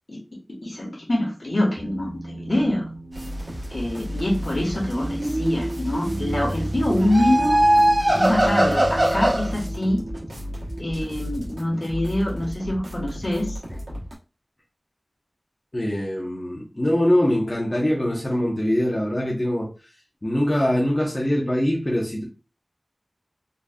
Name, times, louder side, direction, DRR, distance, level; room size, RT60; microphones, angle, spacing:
voice 1, 0.6-2.9 3.7-7.6 8.1-10.0 10.8-13.6, left 1 dB, 60° left, 1.4 m, -25 dB
sound 1, 1.8-12.5, right 1 dB, 60° right, 1.0 m, -36 dB
sound 2, 3.1-14.1, equal, 85° right, 1.2 m, -33 dB
sound 3, 4.9-5.9 6.9-9.5, right 1 dB, 35° right, 0.7 m, -21 dB
voice 2, 15.7-19.7 20.2-22.2, left 1 dB, 30° left, 1.0 m, -23 dB
4.0 x 3.2 x 2.4 m
wide cardioid pair, 55°, 0 cm